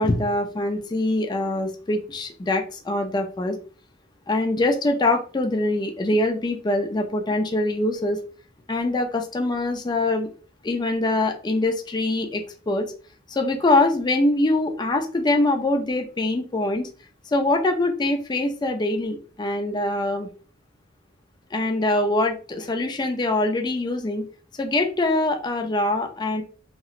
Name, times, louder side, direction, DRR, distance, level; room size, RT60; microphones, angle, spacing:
voice 1, 0.0-3.6 4.3-8.2 8.7-10.3 10.6-12.9 13.3-16.9 17.3-20.3 21.5-24.2 24.6-26.4, left 2 dB, 20° left, 4 dB, 0.4 m, -23 dB
3.0 x 2.9 x 2.4 m, 0.38 s
head